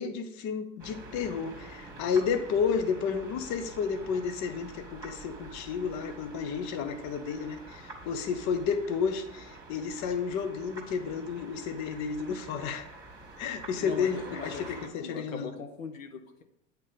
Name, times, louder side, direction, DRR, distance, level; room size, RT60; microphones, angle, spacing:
voice 1, 0.0-12.9 13.4-15.5, left 6 dB, 45° left, 8 dB, 1.0 m, -31 dB
sound 1, 0.8-14.9, right 2 dB, 10° right, 1.9 m, -47 dB
voice 2, 13.8-16.4, left 5 dB, 75° left, 6 dB, 0.9 m, -40 dB
8.3 x 4.1 x 5.6 m, 0.81 s
hypercardioid pair, 85°, 40 cm